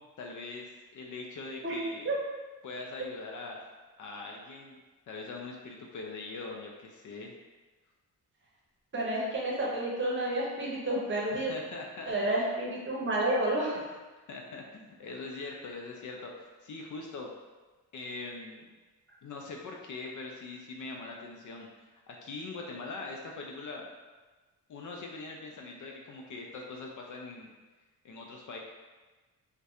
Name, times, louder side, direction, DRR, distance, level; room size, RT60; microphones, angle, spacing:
voice 1, 0.0-2.1 2.6-3.6 4.0-4.8 5.1-7.3 11.3-12.1 13.7-13.8 14.3-16.3 16.6-17.3 17.9-18.7 19.2-21.7 21.9-23.9 24.7-27.5 28.0-28.6, left 3 dB, 55° left, 0 dB, 0.4 m, -42 dB
voice 2, 8.9-11.5 12.1-13.8, right 1 dB, 30° right, -4 dB, 0.8 m, -30 dB
2.6 x 2.2 x 2.3 m, 1.2 s
cardioid pair, 60°, 38 cm